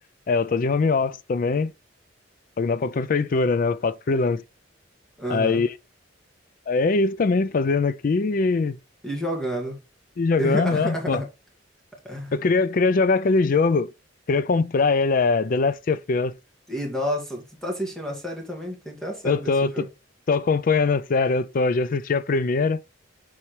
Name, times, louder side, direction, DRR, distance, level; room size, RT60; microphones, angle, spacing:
voice 1, 0.3-1.7 2.6-4.4 5.3-5.7 6.7-8.8 10.2-11.2 12.3-13.9 14.3-16.3 19.2-19.9 20.3-22.8, left 4 dB, 45° left, 0.4 m, -22 dB
voice 2, 5.2-5.6 9.0-9.8 10.4-11.3 12.0-12.4 16.7-19.9, equal, 5° left, 1.9 m, -30 dB
7.2 x 4.8 x 3.2 m
head